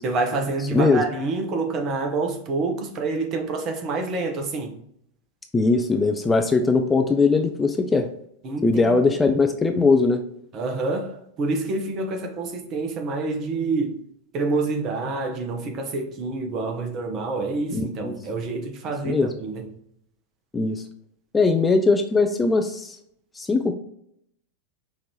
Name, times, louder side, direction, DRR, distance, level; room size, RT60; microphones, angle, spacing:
voice 1, 0.0-4.8 8.4-9.0 10.5-14.0 14.3-19.7, right 3 dB, 35° right, 0.7 m, -27 dB
voice 2, 5.5-8.1 8.6-10.2 17.7-18.1 19.1-19.3 20.5-20.8 21.3-23.0 23.4-23.7, left 3 dB, 15° left, 0.3 m, -20 dB
5.1 x 2.5 x 2.8 m
figure-of-eight pair, 90°, 0 cm